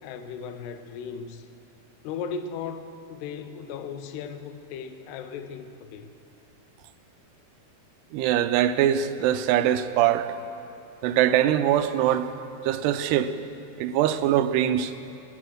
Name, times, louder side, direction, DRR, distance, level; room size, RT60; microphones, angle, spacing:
voice 1, 0.0-1.5 2.0-6.1, left 6 dB, 85° left, 9 dB, 2.9 m, -37 dB
voice 2, 8.1-10.3 11.0-12.3 12.6-13.3 13.8-14.9, right 11 dB, 85° right, 11 dB, 2.7 m, -22 dB
20.0 x 10.0 x 6.4 m, 2.7 s
omnidirectional pair, 4.7 m